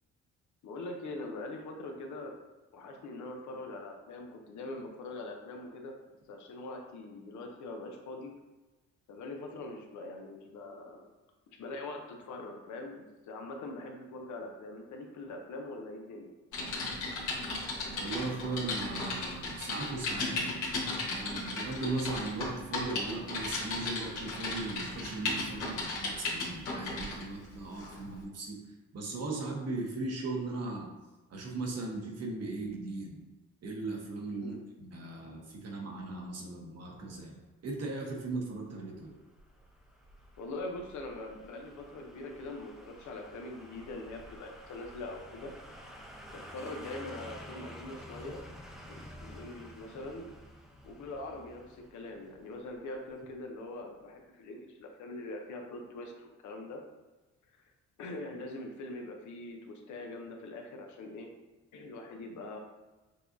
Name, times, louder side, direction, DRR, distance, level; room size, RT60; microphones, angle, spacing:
voice 1, 0.6-2.3 2.7-5.9 6.3-8.3 9.1-11.1 11.6-16.3 34.3-34.6 40.4-45.5 46.3-48.4 48.9-50.3 50.8-56.8 57.5-57.6 58.0-61.3 61.7-62.6, left 2 dB, 75° left, 2 dB, 0.8 m, -43 dB
Typing, 16.5-27.2 27.8-28.0, left 2 dB, 90° left, 1.3 m, -35 dB
voice 2, 18.0-20.7 21.0-28.6 28.9-30.9 31.3-33.2 33.6-39.1, right 3 dB, 55° right, 0 dB, 1.1 m, -38 dB
sound 1, 38.3-53.2 53.5-53.6, equal, ahead, 0.6 m, -51 dB
6.5 x 2.3 x 2.6 m, 1.2 s
cardioid pair, 90°, 30 cm